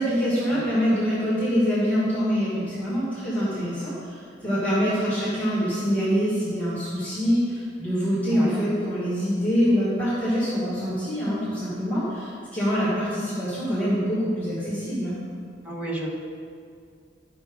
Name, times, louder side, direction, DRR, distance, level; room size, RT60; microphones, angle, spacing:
voice 1, 0.0-15.1, equal, 10° left, -10 dB, 2.2 m, -25 dB
voice 2, 8.3-8.7 15.6-16.2, right 1 dB, 5° right, -2 dB, 1.2 m, -31 dB
12.0 x 6.1 x 3.8 m, 2.2 s
head